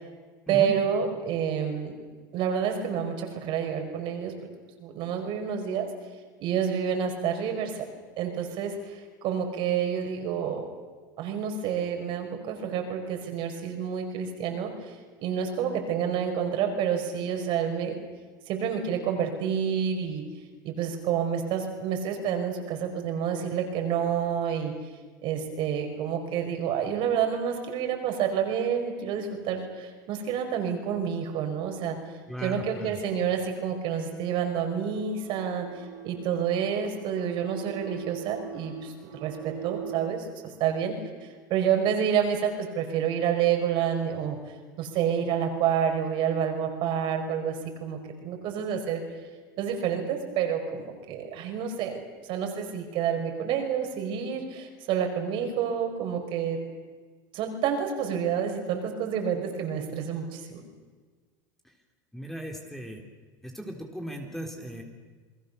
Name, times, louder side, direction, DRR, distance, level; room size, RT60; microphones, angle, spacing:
voice 1, 0.5-2.0 2.3-4.3 4.8-5.9 6.4-7.9 8.2-10.7 11.2-14.9 15.2-18.0 18.5-20.2 20.6-24.7 25.2-32.0 32.4-35.7 36.0-44.4 44.8-49.0 49.6-56.6 57.3-60.6, right 8 dB, 55° right, 4 dB, 5.5 m, -29 dB
voice 2, 32.3-33.0 62.1-63.0 63.4-64.8, equal, 5° left, 2 dB, 3.7 m, -37 dB
sound 1, 34.2-40.1, right 10 dB, 80° right, 4.6 m, -42 dB
29.0 x 20.5 x 6.9 m, 1.4 s
supercardioid pair, 105°, 10 cm